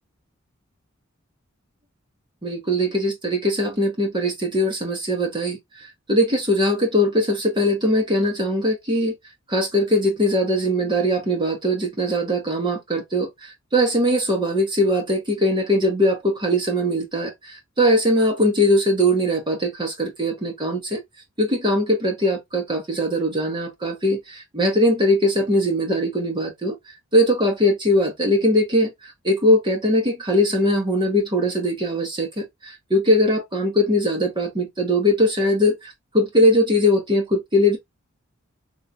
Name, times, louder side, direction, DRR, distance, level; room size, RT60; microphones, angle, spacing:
voice 1, 2.4-5.6 6.1-9.1 9.5-21.0 21.4-26.8 27.1-28.9 29.2-37.8, equal, 20° right, 1.3 m, -21 dB
3.7 x 3.2 x 2.6 m
head